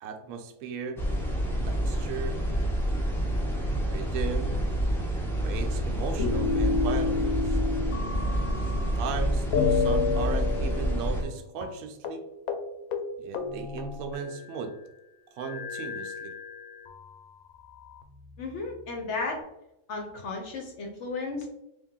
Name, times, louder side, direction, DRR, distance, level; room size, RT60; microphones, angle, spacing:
voice 1, 0.0-1.1 1.7-2.5 3.9-4.6 5.4-7.6 8.6-12.2 13.2-14.8 15.3-16.4, right 5 dB, 75° right, 5 dB, 1.0 m, -37 dB
sound 1, 1.0-11.2, equal, 5° left, 0.5 m, -28 dB
sound 2, 6.2-9.1 9.5-11.3 11.6-11.7 12.0-12.2 12.5-12.6 12.9-14.6 15.4-17.0 17.7-18.6, left 5 dB, 80° left, 1.0 m, -30 dB
voice 2, 18.4-19.4 19.9-21.5, left 3 dB, 60° left, 2 dB, 0.9 m, -34 dB
3.4 x 2.7 x 3.5 m, 0.88 s
omnidirectional pair, 1.5 m